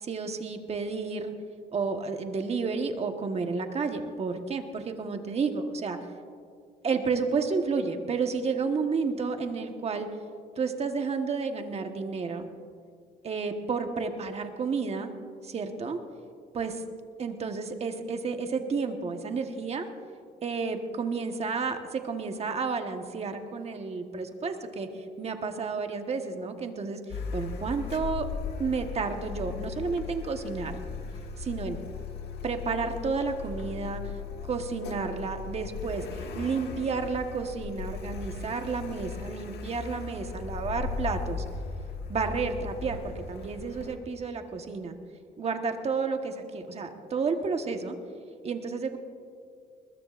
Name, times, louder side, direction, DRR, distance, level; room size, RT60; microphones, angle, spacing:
voice 1, 0.0-1.3 1.7-6.0 6.8-10.1 10.6-12.5 13.2-15.1 15.4-16.0 16.5-16.8 17.2-19.9 20.4-24.9 25.2-27.0 27.3-28.3 28.6-30.8 31.4-31.8 32.4-34.0 34.5-41.4 42.1-45.0 45.4-48.0 48.4-49.0, right 4 dB, 40° right, 5 dB, 1.3 m, -31 dB
Car, 27.1-44.0, left 5 dB, 75° left, 1.5 m, -37 dB
21.0 x 21.0 x 2.5 m, 2.3 s
cardioid pair, 120°, 17 cm